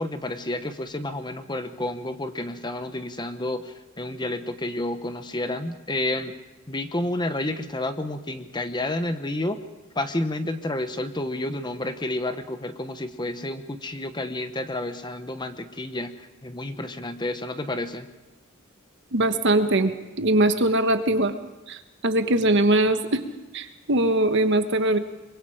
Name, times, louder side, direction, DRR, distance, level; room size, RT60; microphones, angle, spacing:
voice 1, 0.0-6.4 6.7-9.6 9.9-18.1, left 1 dB, 20° left, 9 dB, 1.0 m, -30 dB
voice 2, 19.1-21.3 21.7-23.2 23.5-25.0, right 1 dB, 55° right, 8 dB, 1.3 m, -21 dB
24.5 x 22.5 x 5.0 m, 1.0 s
head